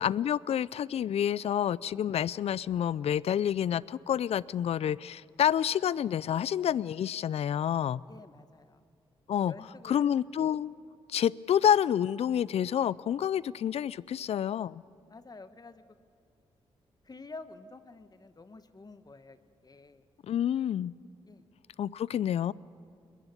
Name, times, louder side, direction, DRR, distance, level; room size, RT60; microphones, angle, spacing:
voice 1, 0.0-8.0 9.3-9.5 9.9-10.7 11.1-14.8 20.2-20.9 21.8-22.5, left 9 dB, 65° left, 22 dB, 0.5 m, -28 dB
voice 2, 8.1-8.8 9.4-10.1 10.4-10.5 13.4-13.5 15.1-15.8 17.0-20.1 21.3-21.4, left 3 dB, 35° left, 11 dB, 1.2 m, -49 dB
21.5 x 21.0 x 8.3 m, 2.4 s
supercardioid pair, 45°, 11 cm